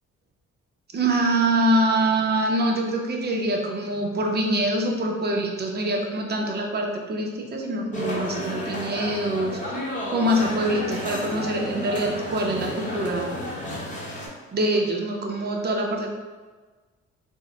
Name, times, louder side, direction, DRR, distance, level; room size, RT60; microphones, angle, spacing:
voice 1, 0.9-9.8 10.1-13.3 14.5-16.1, right 1 dB, 35° right, 1 dB, 0.6 m, -24 dB
sound 1, 7.9-14.3, left 1 dB, 25° left, 0.9 m, -32 dB
3.5 x 2.1 x 3.8 m, 1.4 s
cardioid pair, 90°, 30 cm